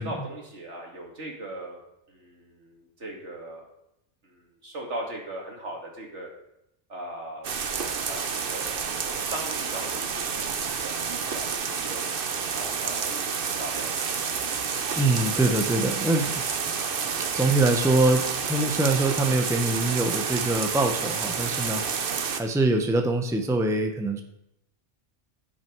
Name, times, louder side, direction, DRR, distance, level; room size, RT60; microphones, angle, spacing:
voice 1, 0.0-1.8 2.1-3.7 4.2-6.3 6.9-8.8 9.0-12.0 12.5-13.9, right 1 dB, 75° right, -1 dB, 2.6 m, -39 dB
sound 1, 7.4-22.4, right 6 dB, 55° right, 1.0 m, -29 dB
voice 2, 15.0-16.3 17.3-21.8 22.4-24.2, right 2 dB, 5° right, 4 dB, 0.8 m, -24 dB
16.0 x 6.1 x 4.6 m, 0.83 s
omnidirectional pair, 1.2 m